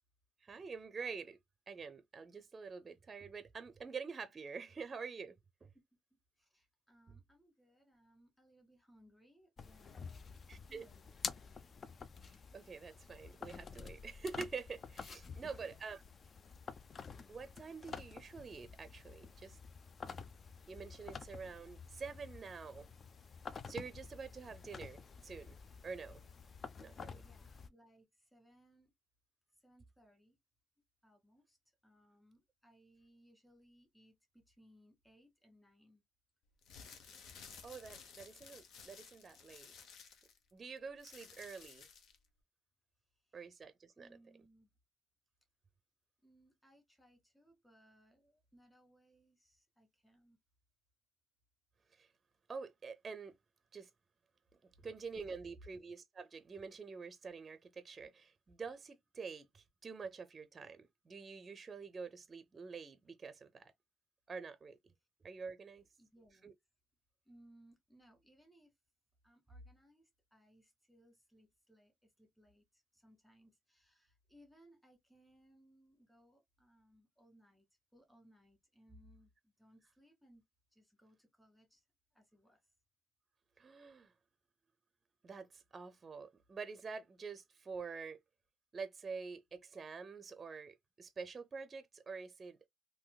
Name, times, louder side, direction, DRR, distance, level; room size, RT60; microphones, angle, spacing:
voice 1, 0.4-1.4 1.7-5.7 7.1-7.2 10.5-10.9 12.2-16.0 17.3-19.6 20.7-22.9 23.7-26.2 26.8-27.2 37.6-39.7 40.5-41.9 43.3-44.1 51.9-52.1 52.5-53.4 53.7-53.9 54.6-63.7 64.3-64.9 65.2-65.8 66.4-66.5 83.6-84.1 85.2-88.2 88.7-92.7, right 5 dB, 35° right, 0.5 m, -47 dB
voice 2, 6.3-11.1 15.3-15.7 26.8-28.9 29.5-30.4 31.0-31.6 31.8-36.0 43.2-43.4 44.0-44.7 46.2-50.4 66.0-66.5 67.3-68.7 69.2-77.7 77.9-80.4 80.7-81.8 82.1-82.6, equal, 5° left, 1.8 m, -66 dB
sound 1, 9.6-27.7, left 5 dB, 45° left, 0.4 m, -50 dB
sound 2, 36.5-42.3, left 6 dB, 80° left, 0.7 m, -56 dB
3.7 x 2.6 x 2.3 m
cardioid pair, 90°, 0 cm